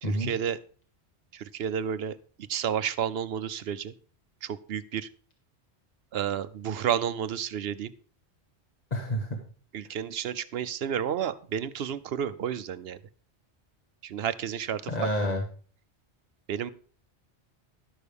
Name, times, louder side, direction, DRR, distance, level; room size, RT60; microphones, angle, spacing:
voice 1, 0.0-0.6 1.3-3.9 4.4-5.1 6.1-7.9 9.7-13.0 14.0-15.1 16.5-16.7, right 9 dB, 65° right, 14 dB, 0.9 m, -31 dB
voice 2, 8.9-9.4 14.9-15.4, equal, 40° left, 1 dB, 1.5 m, -28 dB
11.5 x 6.5 x 5.2 m, 0.42 s
omnidirectional pair, 1.1 m